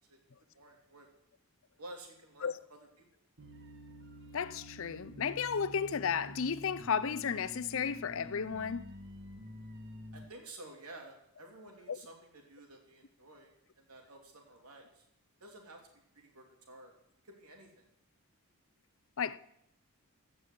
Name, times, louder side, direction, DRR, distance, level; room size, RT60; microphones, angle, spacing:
voice 1, 0.5-1.1 1.8-3.0 10.1-13.5 13.8-15.1 15.4-15.8 16.1-16.9 17.2-17.9, right 2 dB, 85° right, 3.1 m, -52 dB
sound 1, 3.4-10.2, equal, 55° right, 1.6 m, -49 dB
voice 2, 4.3-8.8 11.9-12.0 19.2-19.4, left 6 dB, 60° left, 0.5 m, -33 dB
15.5 x 6.2 x 8.0 m
head